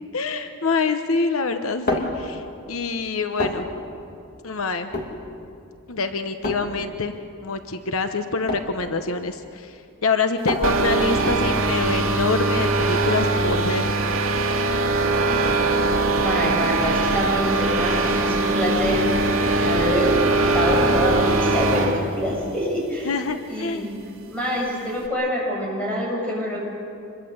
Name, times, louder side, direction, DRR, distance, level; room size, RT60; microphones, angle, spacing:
voice 1, 0.1-2.4 2.7-3.7 4.4-4.9 5.9-7.1 7.4-13.9 23.0-23.9, left 4 dB, 75° left, 8 dB, 1.0 m, -26 dB
sound 1, 1.5-13.0, left 1 dB, 45° left, 2.8 m, -32 dB
sound 2, 10.6-22.0, right 2 dB, 70° right, 2.7 m, -21 dB
voice 2, 16.2-19.0 19.6-23.1 23.5-24.0 24.3-26.6, equal, 5° left, -4 dB, 7.6 m, -25 dB
26.5 x 22.0 x 8.1 m, 2.5 s
head